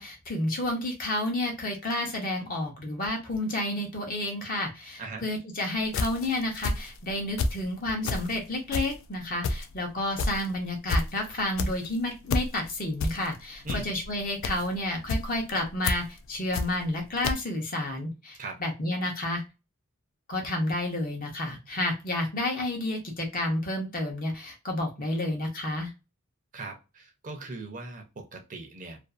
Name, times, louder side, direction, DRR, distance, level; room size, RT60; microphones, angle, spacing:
voice 1, 0.0-19.4 20.3-25.9, left 1 dB, 40° left, 1 dB, 0.8 m, -30 dB
sound 1, 5.9-7.6 8.0-17.0 17.2-17.3, left 2 dB, 60° left, 0.3 m, -30 dB
voice 2, 26.5-29.0, right 3 dB, 35° right, 4 dB, 0.5 m, -39 dB
2.5 x 2.4 x 2.3 m, 0.28 s
head